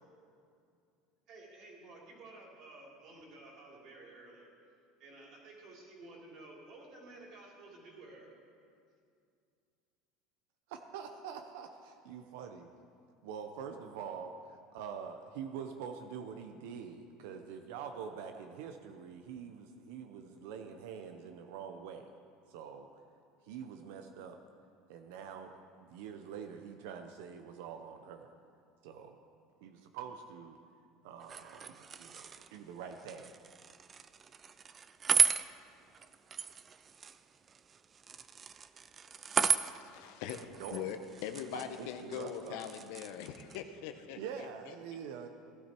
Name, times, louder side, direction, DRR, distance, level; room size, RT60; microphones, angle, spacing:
voice 1, 1.3-4.5 5.0-8.3, right 2 dB, 50° right, -2 dB, 3.6 m, -53 dB
voice 2, 10.7-12.7 13.2-22.1 22.5-22.9 23.4-24.4 24.9-28.3 28.8-29.2 29.6-30.6 31.0-33.3 40.6-40.9 41.5-42.6 44.2-45.3, right 7 dB, 80° right, 6 dB, 0.8 m, -45 dB
sound 1, 31.2-43.6, right 6 dB, 25° right, 0.4 m, -36 dB
voice 3, 39.6-44.7, left 9 dB, 70° left, 7 dB, 1.0 m, -42 dB
16.0 x 12.0 x 4.5 m, 2.4 s
cardioid pair, 150°, 0 cm